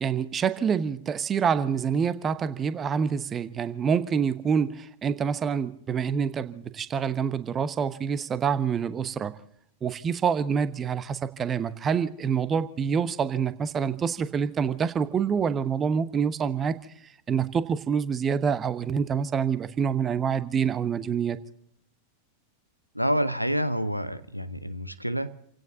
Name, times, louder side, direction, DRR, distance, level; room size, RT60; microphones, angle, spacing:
voice 1, 0.0-9.3 9.8-16.8 17.3-21.4, right 7 dB, 25° right, 13 dB, 1.0 m, -26 dB
voice 2, 22.9-25.3, equal, 90° right, 13 dB, 0.9 m, -28 dB
29.5 x 17.0 x 2.8 m, 0.71 s
figure-of-eight pair, 90°, 0 cm